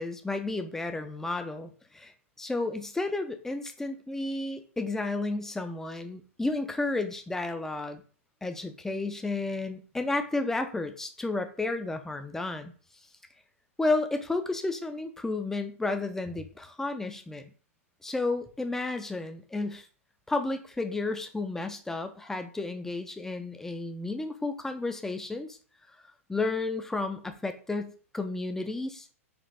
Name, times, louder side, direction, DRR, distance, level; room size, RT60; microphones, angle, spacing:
voice 1, 0.0-8.0 8.4-12.7 13.8-17.5 18.0-19.9 20.3-25.6 26.3-29.1, left 2 dB, 5° left, 7 dB, 0.4 m, -32 dB
4.1 x 2.4 x 3.3 m, 0.41 s
hypercardioid pair, 120°, 8 cm